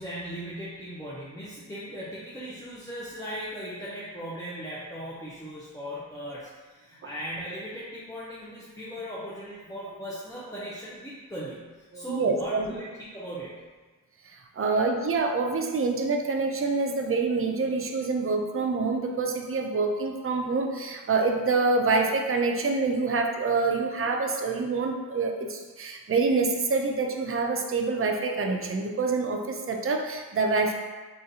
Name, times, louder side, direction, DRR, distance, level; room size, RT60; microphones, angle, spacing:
voice 1, 0.0-13.6, right 1 dB, 10° left, -9 dB, 0.6 m, -38 dB
voice 2, 11.9-12.7 14.6-30.7, right 3 dB, 35° right, 3 dB, 0.4 m, -26 dB
3.9 x 2.4 x 2.7 m, 1.3 s
wide cardioid pair, 70°, 38 cm